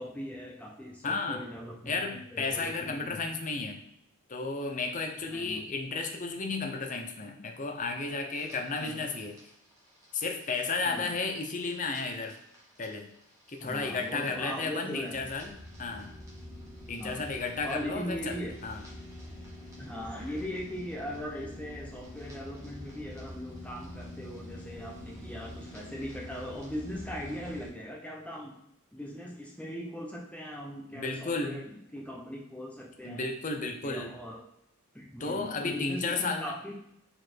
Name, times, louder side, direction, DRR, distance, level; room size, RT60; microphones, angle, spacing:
voice 1, 0.0-3.2 5.2-5.6 8.7-9.0 10.8-11.2 13.6-15.3 17.0-17.3 17.6-18.5 19.8-28.6 28.9-33.3 33.8-34.4 34.9-36.7, equal, 5° left, -1 dB, 1.0 m, -40 dB
voice 2, 1.0-1.5 1.9-3.8 4.3-9.4 10.1-12.4 12.8-13.1 13.5-16.1 16.9-18.8 30.9-31.6 33.0-34.1 35.2-36.5, left 3 dB, 35° left, 4 dB, 0.7 m, -33 dB
sound 1, 8.3-27.7, left 1 dB, 15° right, 1.7 m, -46 dB
4.7 x 4.4 x 4.5 m, 0.78 s
head